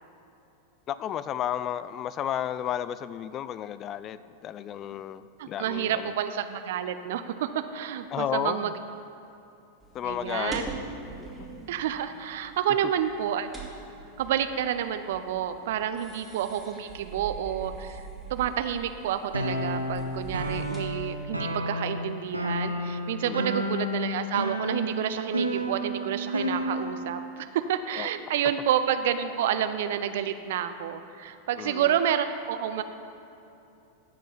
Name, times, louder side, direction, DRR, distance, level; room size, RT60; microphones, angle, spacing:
voice 1, 0.9-6.1 8.1-8.7 9.9-10.7 11.2-11.3 23.2-23.6 28.0-28.1 31.6-32.0, left 10 dB, 30° left, 15 dB, 0.3 m, -33 dB
voice 2, 5.4-8.7 10.0-10.6 11.7-13.5 14.2-32.8, right 10 dB, 55° right, 10 dB, 0.6 m, -29 dB
sound 1, 9.8-21.2, right 3 dB, ahead, 2.4 m, -44 dB
sound 2, 19.3-27.2, equal, 85° right, 0.9 m, -31 dB
14.0 x 4.6 x 7.8 m, 2.8 s
figure-of-eight pair, 90°, 0 cm